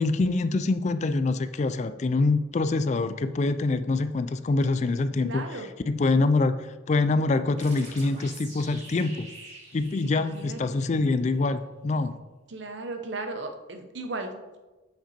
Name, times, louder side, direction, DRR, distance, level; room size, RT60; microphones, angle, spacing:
voice 1, 0.0-5.5 5.9-9.3 9.7-12.2, left 3 dB, 35° left, 12 dB, 0.3 m, -25 dB
voice 2, 5.2-5.7 10.0-10.8 12.5-14.6, right 2 dB, 70° right, 6 dB, 0.9 m, -36 dB
sound 1, 7.6-11.1, right 2 dB, 35° right, 2.4 m, -46 dB
7.4 x 6.0 x 4.2 m, 1.2 s
head